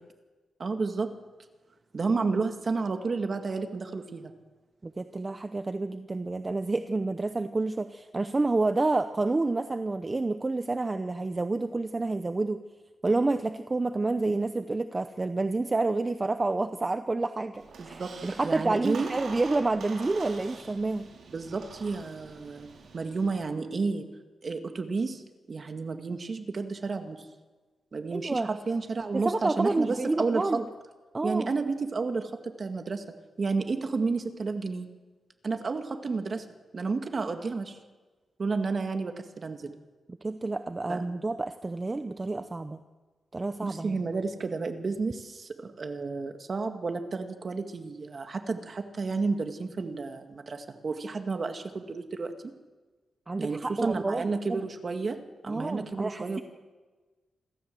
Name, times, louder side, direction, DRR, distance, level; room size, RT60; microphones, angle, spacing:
voice 1, 0.6-1.1 1.9-4.3 17.8-18.1 18.4-19.1 21.3-22.7 22.9-24.1 24.4-25.2 25.5-27.2 27.9-30.6 31.2-33.0 33.4-34.9 35.4-36.5 36.7-37.8 38.4-39.7 40.9-41.0 43.6-52.3 53.4-56.4, right 4 dB, 40° right, 6 dB, 1.9 m, -31 dB
voice 2, 4.8-12.6 13.0-21.1 28.1-28.5 29.1-30.6 31.1-31.5 40.2-42.8 43.3-44.0 53.3-54.6 55.5-56.4, right 2 dB, 25° right, 9 dB, 0.7 m, -29 dB
Squeak, 17.5-23.3, right 4 dB, 75° right, 5.0 m, -45 dB
26.5 x 13.5 x 7.7 m, 1.3 s
wide cardioid pair, 115°, 0 cm